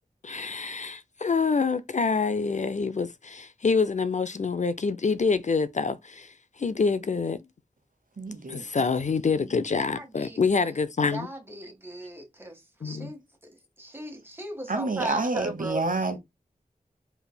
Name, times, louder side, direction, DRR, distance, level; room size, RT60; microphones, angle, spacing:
voice 1, 0.2-7.4 8.5-11.3 12.8-13.1, left 4 dB, 55° left, 0.5 m, -26 dB
voice 2, 8.2-8.8 14.7-16.2, right 3 dB, 65° right, 1.1 m, -28 dB
voice 3, 9.8-16.0, right 1 dB, 15° right, 1.6 m, -39 dB
4.6 x 3.3 x 2.3 m
wide cardioid pair, 45°, 15 cm